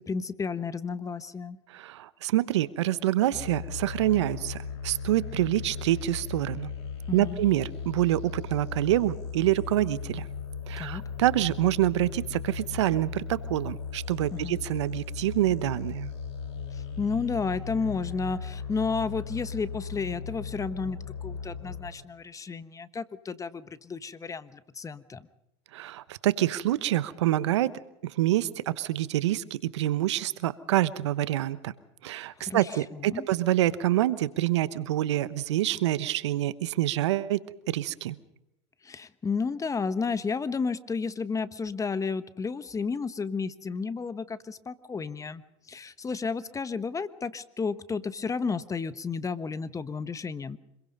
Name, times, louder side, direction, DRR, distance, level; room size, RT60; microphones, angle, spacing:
voice 1, 0.0-1.6 7.1-7.4 10.8-11.0 14.3-14.6 16.7-25.3 32.4-33.3 38.8-45.4 45.7-50.6, left 5 dB, 20° left, 14 dB, 1.3 m, -32 dB
voice 2, 1.7-4.6 4.8-6.7 7.1-10.3 10.7-16.1 25.7-27.7 28.0-31.7 32.0-37.4 37.7-38.2, right 14 dB, 80° right, 16 dB, 1.0 m, -26 dB
sound 1, 3.3-21.9, left 6 dB, 75° left, 6.4 m, -37 dB
26.0 x 22.0 x 5.4 m, 0.84 s
hypercardioid pair, 85°, 15 cm